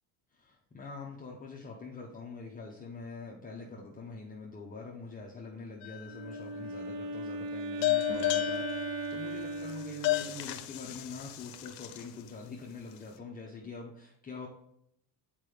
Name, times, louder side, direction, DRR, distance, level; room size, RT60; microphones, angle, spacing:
voice 1, 0.3-14.5, left 4 dB, 20° left, -1 dB, 0.8 m, -44 dB
sound 1, 5.8-6.4 7.8-12.3, left 16 dB, 65° left, 0.8 m, -33 dB
Wind instrument woodwind instrument, 6.0-10.6, right 3 dB, 70° right, 0.8 m, -38 dB
sound 2, 8.1-11.3, equal, 25° right, 1.7 m, -49 dB
7.4 x 4.7 x 3.4 m, 0.76 s
cardioid pair, 110°, 43 cm